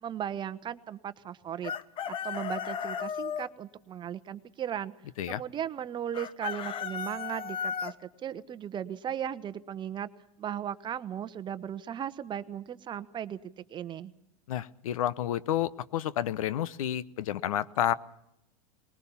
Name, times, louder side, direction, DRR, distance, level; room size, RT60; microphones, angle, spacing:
voice 1, 0.0-1.7 2.1-4.9 5.3-10.1 10.4-13.4 13.7-14.1, right 9 dB, 25° right, 13 dB, 0.9 m, -36 dB
Chicken rooster, 1.6-3.5 6.1-7.9, left 7 dB, 30° left, 0.9 m, -35 dB
voice 2, 14.5-17.9, left 11 dB, 80° left, 17 dB, 0.9 m, -30 dB
20.5 x 19.5 x 7.1 m, 0.80 s
hypercardioid pair, 120°, 18 cm